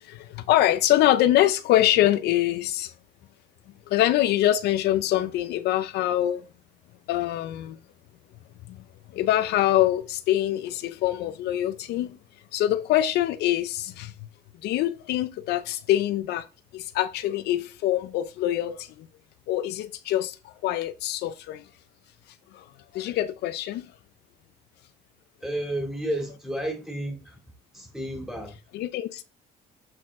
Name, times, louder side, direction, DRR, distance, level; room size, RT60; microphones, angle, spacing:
voice 1, 0.0-2.9 3.9-6.4 7.1-7.8 9.1-12.2 12.5-14.1 14.6-16.4 16.7-19.1 19.5-21.6 22.5-22.6 22.9-23.9 28.7-29.2, left 13 dB, 80° left, 0.6 m, -24 dB
voice 2, 25.4-27.4 27.7-28.6, right 1 dB, 5° right, 2.6 m, -31 dB
7.9 x 4.3 x 3.7 m
cardioid pair, 110°, 17 cm